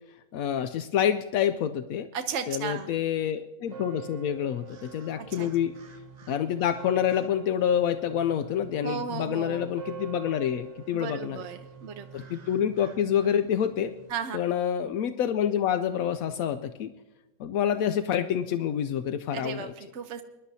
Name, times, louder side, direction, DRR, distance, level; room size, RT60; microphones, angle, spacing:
voice 1, 0.3-2.1 2.5-5.7 6.3-11.4 12.1-13.9 14.3-16.9 17.4-19.7, left 9 dB, 80° left, 10 dB, 1.0 m, -27 dB
voice 2, 2.1-3.0 5.2-5.5 8.8-9.7 10.9-12.1 14.1-14.4 19.3-20.2, right 7 dB, 60° right, 6 dB, 1.0 m, -35 dB
sound 1, 3.7-14.1, right 8 dB, 35° right, 0.8 m, -47 dB
23.0 x 11.0 x 2.7 m, 1.1 s
omnidirectional pair, 1.5 m